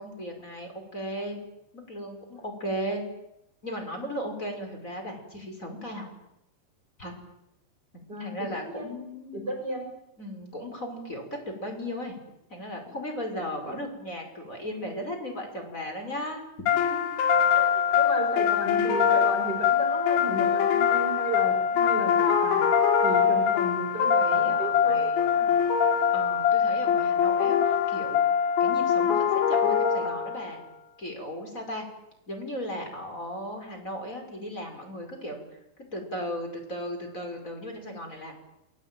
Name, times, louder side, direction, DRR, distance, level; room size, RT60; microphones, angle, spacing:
voice 1, 0.0-1.4 1.7-3.0 3.6-6.1 7.0-7.1 8.2-9.5 10.2-11.2 11.6-12.2 12.5-16.4 16.7-17.1 17.5-17.8 23.9-25.5 26.1-28.2 28.6-30.6 31.0-31.9 32.3-35.4 35.9-38.3, equal, 15° left, 3 dB, 5.4 m, -36 dB
voice 2, 8.1-8.9 9.3-9.9 13.6-13.8 17.7-22.6 23.0-25.5, right 1 dB, 20° right, 3 dB, 5.3 m, -34 dB
sound 1, 16.7-30.5, left 7 dB, 80° left, 4.5 m, -23 dB
28.0 x 21.0 x 9.2 m, 0.84 s
omnidirectional pair, 5.3 m